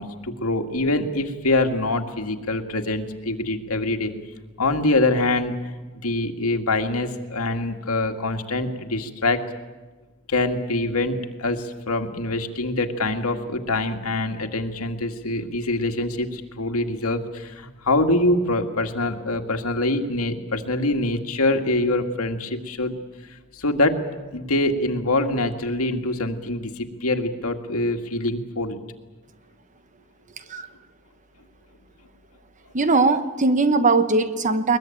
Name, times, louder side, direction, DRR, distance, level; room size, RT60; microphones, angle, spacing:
voice 1, 0.0-4.1 4.6-9.5 10.3-23.0 23.5-24.0 24.3-28.8, left 2 dB, 85° left, 5 dB, 2.0 m, -24 dB
voice 2, 32.7-34.8, right 3 dB, 35° right, 11 dB, 1.1 m, -20 dB
21.5 x 21.5 x 9.0 m, 1.2 s
head